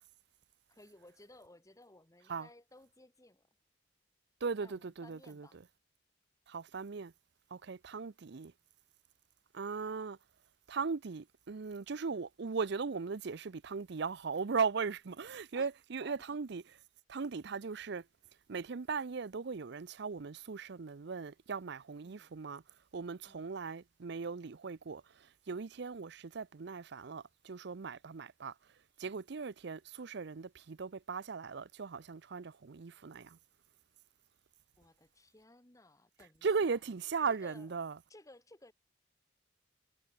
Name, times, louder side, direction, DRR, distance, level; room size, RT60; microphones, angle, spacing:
voice 1, 0.7-3.5 4.6-5.6 15.6-15.7 16.0-16.2 22.0-22.3 23.3-23.6 34.8-36.8 37.3-37.7 38.1-38.7, left 2 dB, 15° left, 1.6 m, -59 dB
voice 2, 4.4-5.6 6.5-7.1 7.5-8.5 9.5-10.2 10.7-16.8 17.1-18.1 18.5-22.6 22.9-28.5 29.0-33.4 36.4-38.0, right 5 dB, 60° right, 0.6 m, -38 dB
head